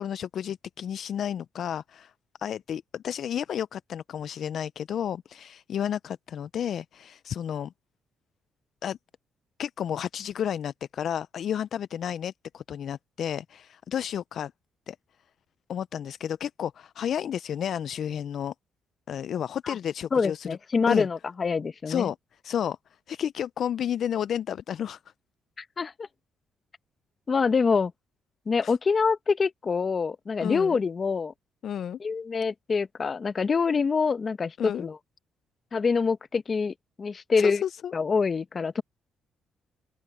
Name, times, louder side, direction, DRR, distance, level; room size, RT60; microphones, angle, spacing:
voice 1, 0.0-2.1 2.4-7.7 8.8-9.0 9.6-14.5 14.9-15.0 15.7-18.5 19.1-20.5 20.9-21.1 21.9-22.2 22.4-22.8 23.1-25.0 28.6-28.7 30.4-30.8 31.6-32.0 34.6-34.9 37.4-37.9, left 9 dB, 65° left, 0.4 m, -31 dB
voice 2, 20.1-22.1 25.6-26.1 27.3-27.9 28.5-31.3 32.0-35.0 35.7-37.6 37.9-38.8, left 5 dB, 40° left, 0.9 m, -25 dB
open air
cardioid pair, 90°, 0 cm